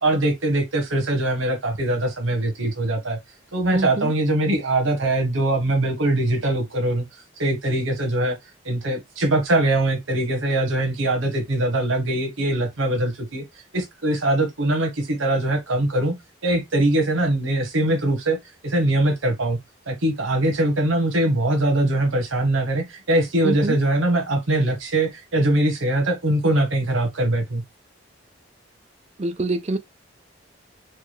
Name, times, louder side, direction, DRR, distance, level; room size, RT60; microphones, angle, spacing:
voice 1, 0.0-3.2 3.5-7.0 7.4-8.4 8.6-13.4 13.7-16.1 16.4-18.4 18.6-19.6 19.9-27.6, right 1 dB, 85° right, 1.1 m, -22 dB
voice 2, 3.7-4.1 23.4-23.8 29.2-29.8, right 2 dB, 30° right, 0.4 m, -25 dB
4.5 x 2.3 x 3.2 m
head